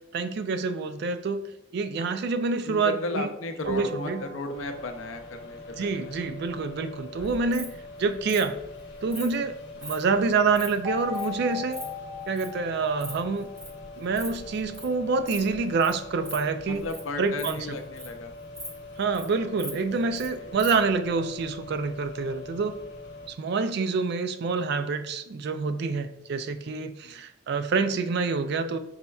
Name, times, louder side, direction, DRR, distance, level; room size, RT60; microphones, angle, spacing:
voice 1, 0.1-1.5 1.7-3.3 3.7-4.2 5.8-7.7 8.0-8.5 9.0-9.5 9.8-11.8 12.3-13.5 14.0-16.8 17.2-17.6 19.0-22.8 23.3-28.8, right 4 dB, 55° right, 10 dB, 0.3 m, -27 dB
voice 2, 2.6-6.2 7.2-7.6 16.6-18.3 20.4-20.6 27.0-27.2, left 2 dB, 85° left, 7 dB, 0.5 m, -35 dB
sound 1, 3.6-5.2 10.8-14.2, left 4 dB, 80° right, 0.9 m, -38 dB
sound 2, 4.5-23.3, left 2 dB, 65° left, 0.9 m, -43 dB
Insect, 7.2-7.7 8.3-8.4 9.1-9.3 9.8-9.9 10.3-10.7 11.1-11.3 11.5-11.8 12.4-12.5 12.8-13.1 13.4-13.7 14.0-14.3 14.5-14.9 15.3-15.5 15.8-15.9 16.2-16.4 16.8-17.0 17.3-18.2 18.5-18.7 19.0-19.3 19.6-20.3 20.6-20.7, right 1 dB, 15° right, 0.8 m, -39 dB
5.4 x 4.2 x 2.3 m, 0.88 s
head